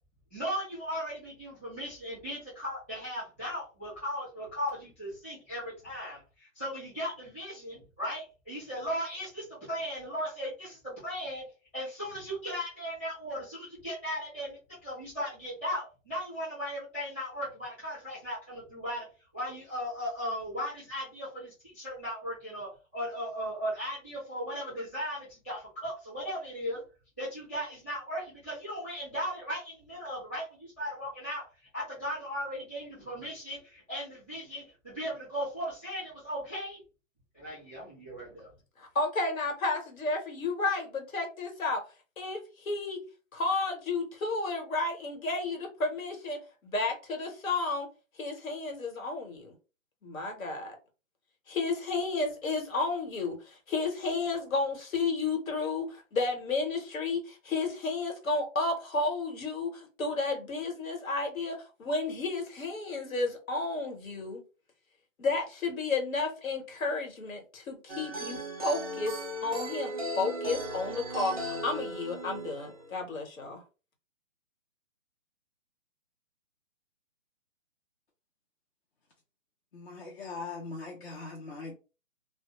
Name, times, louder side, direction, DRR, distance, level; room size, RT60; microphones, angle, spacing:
voice 1, 0.3-11.5 11.7-19.1 19.3-26.8 27.2-31.4 31.7-36.8 37.3-38.5, equal, 10° left, 0.7 m, -37 dB
voice 2, 38.8-41.8 42.2-43.0 43.3-47.9 48.2-49.5 50.0-50.8 51.5-64.4 65.2-73.6, left 3 dB, 85° left, 1.1 m, -32 dB
sound 1, 67.9-72.9, right 1 dB, 30° right, 0.4 m, -37 dB
voice 3, 79.7-81.7, left 3 dB, 50° left, 0.6 m, -40 dB
2.0 x 2.0 x 2.9 m
hypercardioid pair, 170°, 40 cm